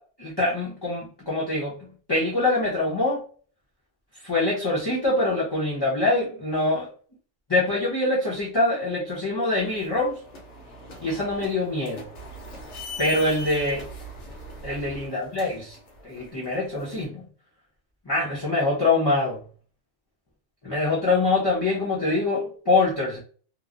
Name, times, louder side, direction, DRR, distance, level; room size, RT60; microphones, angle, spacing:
voice 1, 0.2-1.8 2.1-3.2 4.2-6.9 7.5-10.2 11.0-12.1 13.0-13.8 14.6-15.8 16.0-17.2 18.1-19.4 20.6-23.2, left 2 dB, 25° left, -7 dB, 0.6 m, -24 dB
sound 1, 9.6-17.0, left 1 dB, 65° left, 1.1 m, -41 dB
3.0 x 2.0 x 2.4 m, 0.42 s
omnidirectional pair, 1.3 m